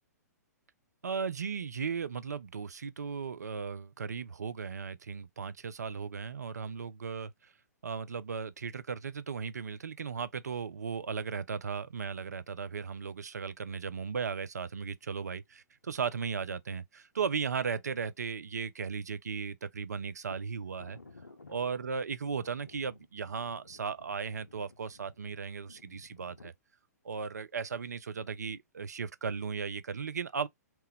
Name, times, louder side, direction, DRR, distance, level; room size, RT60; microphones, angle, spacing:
voice 1, 1.0-7.5 7.8-21.0 21.5-26.5 27.0-30.5, right 6 dB, 70° right, 0.4 m, -36 dB
sound 1, 20.3-26.5, left 3 dB, 90° left, 0.4 m, -56 dB
3.0 x 2.2 x 3.3 m
figure-of-eight pair, 115°, 9 cm